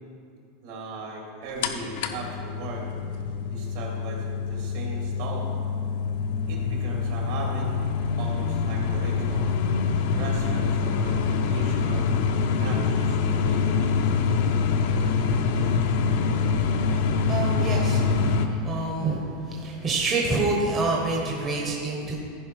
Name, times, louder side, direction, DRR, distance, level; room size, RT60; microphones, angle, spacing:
voice 1, 0.6-2.9 3.5-5.5 6.5-7.7 8.2-9.5 10.2-12.2 12.6-13.8, right 3 dB, 60° right, -1 dB, 2.5 m, -38 dB
sound 1, 1.6-18.5, left 5 dB, 65° left, 0.7 m, -25 dB
voice 2, 17.3-22.2, right 3 dB, 25° right, -2 dB, 1.0 m, -27 dB
14.5 x 5.3 x 4.7 m, 2.5 s
supercardioid pair, 160°, 0 cm